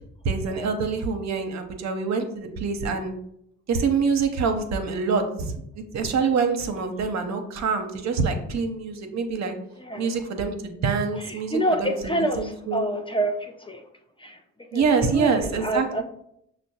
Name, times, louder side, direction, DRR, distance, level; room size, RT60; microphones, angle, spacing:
voice 1, 0.2-3.1 3.7-9.5 10.0-12.8 14.7-16.0, right 5 dB, 55° right, 6 dB, 0.7 m, -26 dB
voice 2, 9.8-10.1 11.1-13.8 14.2-14.4 14.7-16.0, right 1 dB, 15° left, 4 dB, 0.4 m, -28 dB
6.0 x 2.1 x 2.7 m, 0.76 s
supercardioid pair, 50°, 33 cm